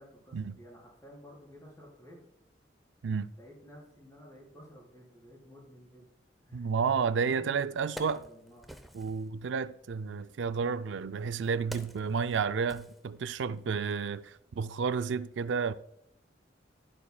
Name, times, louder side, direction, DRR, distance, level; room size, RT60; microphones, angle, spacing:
voice 1, 0.0-2.2 3.4-6.1 6.4-6.7 7.0-8.8, equal, 20° left, 3.9 m, -53 dB
voice 2, 6.5-8.2 8.9-15.7, right 5 dB, 90° right, 0.4 m, -31 dB
Wood, 7.1-7.2 7.6-9.3 10.3-13.6 13.9-14.1, equal, ahead, 0.6 m, -48 dB
12.0 x 11.0 x 2.3 m
head